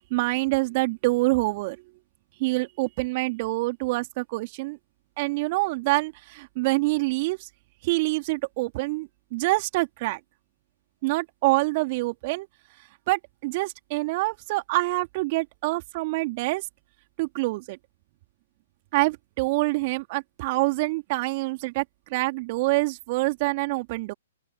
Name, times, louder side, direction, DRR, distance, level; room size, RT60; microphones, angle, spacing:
voice 1, 0.0-1.8 2.4-4.8 5.2-7.5 7.8-10.2 11.0-12.5 13.1-16.7 17.2-17.8 18.9-21.8 22.1-24.1, right 23 dB, 40° right, 2.5 m, -26 dB
open air
figure-of-eight pair, 120°, 0 cm